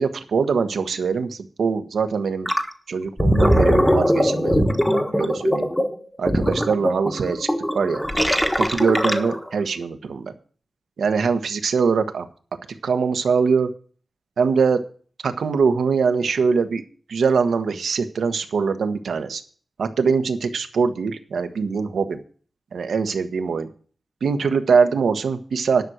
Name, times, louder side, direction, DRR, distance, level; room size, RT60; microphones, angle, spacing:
voice 1, 0.0-2.5 2.9-4.7 5.2-5.7 6.2-7.5 7.7-8.0 8.6-10.3 11.0-12.3 12.8-13.7 14.4-14.8 15.2-16.8 17.1-19.4 19.8-22.2 22.7-23.7 24.2-25.8, right 5 dB, 90° right, 8 dB, 1.2 m, -22 dB
Gurgling, 2.5-2.7 3.0-9.5, equal, 5° left, 1.3 m, -20 dB
10.5 x 6.2 x 7.9 m, 0.43 s
wide cardioid pair, 100°, 0 cm